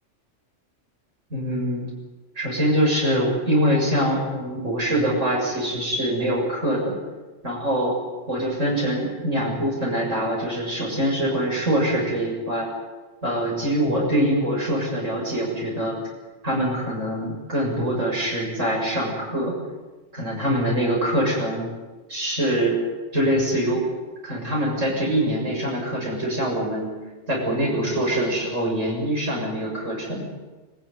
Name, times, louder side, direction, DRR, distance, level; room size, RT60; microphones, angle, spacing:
voice 1, 1.3-1.9 2.4-7.0 7.4-8.0 8.3-12.7 13.2-16.0 16.4-19.5 20.1-21.7 22.1-22.8 23.1-23.8 24.2-26.9 27.3-30.3, right 1 dB, 75° right, -2 dB, 7.5 m, -24 dB
24.0 x 15.0 x 9.7 m, 1.3 s
omnidirectional pair, 1.3 m